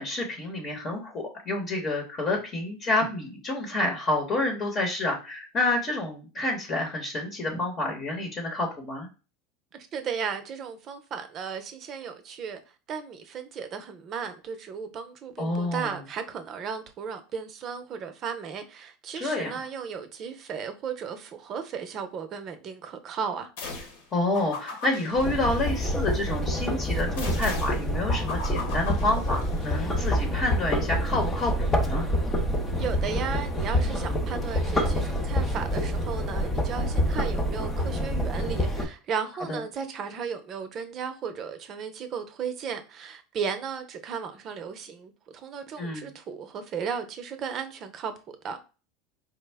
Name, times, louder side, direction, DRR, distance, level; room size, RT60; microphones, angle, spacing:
voice 1, 0.0-9.1 15.4-16.0 19.1-19.6 24.1-32.1 39.5-39.6 45.8-46.1, left 2 dB, 35° left, 1.0 m, -29 dB
voice 2, 9.7-12.6 12.9-23.5 32.8-48.1 48.4-48.6, right 6 dB, 40° right, 0.7 m, -35 dB
sound 1, 23.6-24.0 24.3-26.1 27.2-29.8, left 4 dB, 75° left, 1.3 m, -38 dB
sound 2, 25.1-38.8, equal, 20° left, 0.7 m, -27 dB
4.3 x 2.1 x 3.4 m
supercardioid pair, 110°, 0 cm